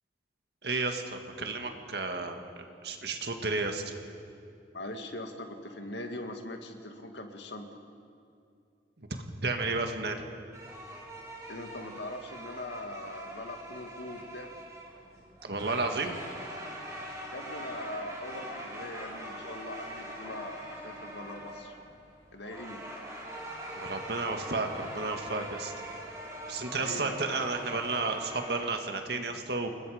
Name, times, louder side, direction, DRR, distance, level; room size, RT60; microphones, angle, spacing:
voice 1, 0.6-3.9 9.0-9.1 9.4-10.2 15.4-16.2 23.7-25.7 26.5-29.7, right 3 dB, 65° right, 5 dB, 1.9 m, -32 dB
voice 2, 4.7-7.8 11.5-14.5 17.3-21.8 22.3-22.8 26.7-27.5, left 1 dB, 85° left, 5 dB, 2.0 m, -41 dB
sound 1, 10.5-28.6, equal, 20° right, 3.8 m, -43 dB
28.5 x 20.5 x 5.1 m, 2.5 s
head